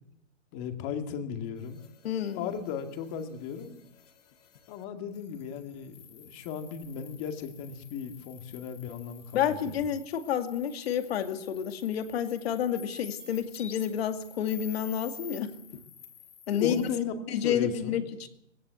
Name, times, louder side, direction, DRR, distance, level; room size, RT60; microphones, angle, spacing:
voice 1, 0.5-1.8 2.3-3.9 4.7-9.7 16.5-17.1 17.4-18.0, left 8 dB, 30° left, 6 dB, 2.2 m, -36 dB
sound 1, 1.6-4.8 5.1-17.0, left 6 dB, 75° left, 3.0 m, -50 dB
voice 2, 2.0-2.5 9.3-15.5 16.5-16.8 17.3-18.3, left 9 dB, 55° left, 7 dB, 2.3 m, -30 dB
19.5 x 16.5 x 8.3 m, 0.81 s
hypercardioid pair, 155°, 37 cm